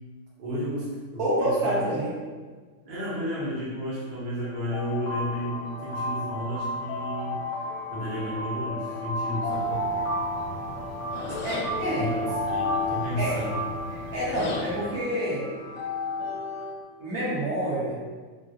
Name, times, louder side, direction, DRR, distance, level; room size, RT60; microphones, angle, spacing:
voice 1, 0.4-1.8 2.8-7.4 7.9-9.8 12.0-12.1 12.4-13.6, equal, 80° right, -8 dB, 0.4 m, -32 dB
voice 2, 1.2-2.1 11.3-12.1 13.2-13.4 13.9-15.5 17.0-18.0, right 1 dB, 55° right, -8 dB, 1.3 m, -28 dB
sound 1, 4.4-16.8, left 3 dB, 10° left, 0.7 m, -36 dB
sound 2, 4.7-13.9, equal, 75° left, 1.0 m, -33 dB
sound 3, 9.5-15.0, left 3 dB, 90° left, 1.4 m, -38 dB
3.7 x 2.1 x 2.6 m, 1.4 s
omnidirectional pair, 2.1 m